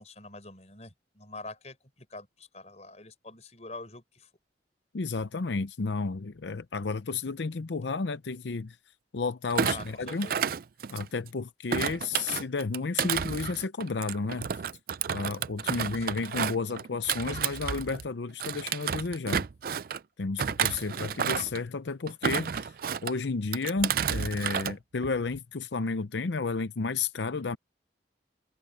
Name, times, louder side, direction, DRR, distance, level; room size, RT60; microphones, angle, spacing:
voice 1, 0.0-4.3 9.6-10.5 15.7-16.3 20.8-21.2, left 2 dB, 40° left, 5.2 m, -46 dB
voice 2, 4.9-8.8 9.1-10.3 10.9-14.5 15.1-19.5 20.2-22.7 23.0-27.6, left 4 dB, 80° left, 0.7 m, -32 dB
Thump thud, 9.5-11.3 11.7-18.1 18.4-20.0 20.4-21.6 22.1-23.1 23.5-24.7 25.0-25.4, right 7 dB, 55° right, 0.4 m, -31 dB
head